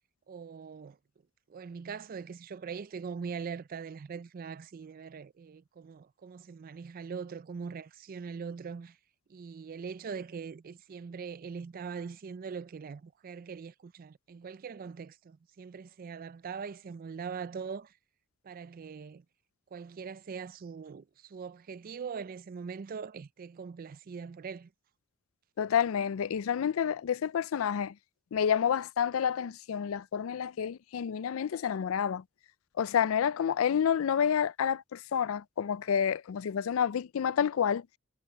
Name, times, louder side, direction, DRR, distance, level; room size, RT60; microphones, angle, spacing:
voice 1, 0.3-1.0 1.5-9.0 9.3-17.9 18.4-19.2 19.7-24.7, right 6 dB, 45° right, 0.4 m, -42 dB
voice 2, 25.6-27.9 28.3-32.2 32.8-37.8, left 8 dB, 75° left, 0.4 m, -29 dB
head